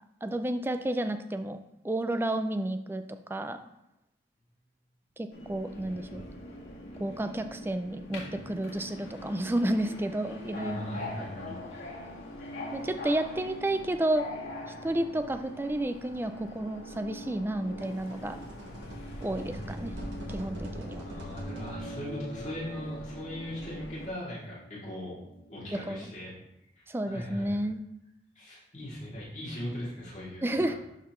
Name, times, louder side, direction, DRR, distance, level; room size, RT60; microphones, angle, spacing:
voice 1, 0.2-1.6 1.8-3.0 3.3-3.6 5.2-6.2 7.0-11.0 12.7-14.3 14.8-18.4 19.2-19.9 20.3-21.0 25.9-26.1 26.9-27.8 30.4-30.7, right 1 dB, 10° right, 8 dB, 0.3 m, -31 dB
Subway metro underground, 5.3-24.1, left 1 dB, 85° left, 1.9 m, -43 dB
voice 2, 10.5-11.6 19.3-19.8 21.0-24.6 24.8-25.1 25.5-26.4 26.7-27.6 28.4-30.6, left 1 dB, 40° left, -9 dB, 2.7 m, -39 dB
sound 1, 17.6-22.5, equal, 75° right, 1.8 m, -42 dB
sound 2, 21.3-26.1, right 1 dB, 20° left, 1.7 m, -48 dB
12.0 x 4.0 x 3.1 m, 0.86 s
head